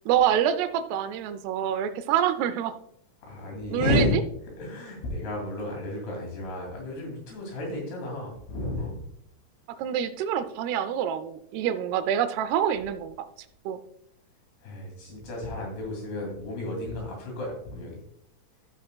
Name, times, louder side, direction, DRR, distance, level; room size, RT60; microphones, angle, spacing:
voice 1, 0.1-2.7 3.7-4.2 9.8-13.3 13.7-13.8, right 9 dB, 85° right, 11 dB, 2.6 m, -26 dB
voice 2, 3.2-4.1 4.6-9.0 14.6-18.0, left 2 dB, 80° left, -1 dB, 4.7 m, -32 dB
14.5 x 6.3 x 2.2 m, 0.73 s
omnidirectional pair, 4.7 m